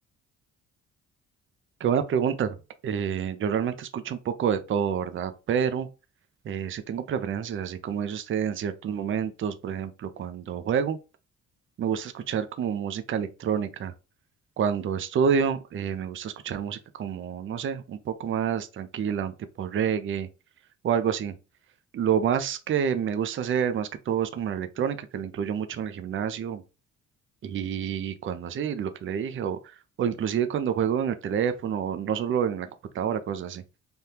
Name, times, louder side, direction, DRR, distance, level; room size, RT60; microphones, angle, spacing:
voice 1, 1.8-2.6 2.8-5.9 6.4-11.0 11.8-13.9 14.6-20.3 20.8-21.3 21.9-26.6 27.4-29.6 30.0-32.7 32.9-33.6, right 8 dB, 40° right, 0.5 m, -28 dB
3.4 x 2.2 x 2.7 m
cardioid pair, 90°, 30 cm